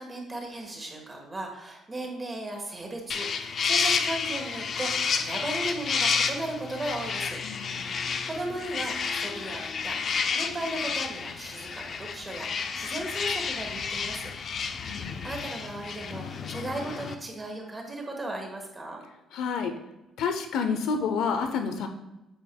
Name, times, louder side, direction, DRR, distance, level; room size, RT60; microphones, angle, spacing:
voice 1, 0.0-7.4 7.8-10.0 10.3-14.3 14.8-19.0, right 1 dB, 20° right, 1 dB, 1.3 m, -36 dB
sound 1, 3.1-17.1, left 5 dB, 45° left, 0.5 m, -30 dB
voice 2, 7.4-7.9 14.9-15.3 19.3-19.7 20.2-21.9, left 5 dB, 80° left, 6 dB, 0.8 m, -29 dB
8.1 x 5.4 x 2.2 m, 0.97 s
cardioid pair, 125°, 0 cm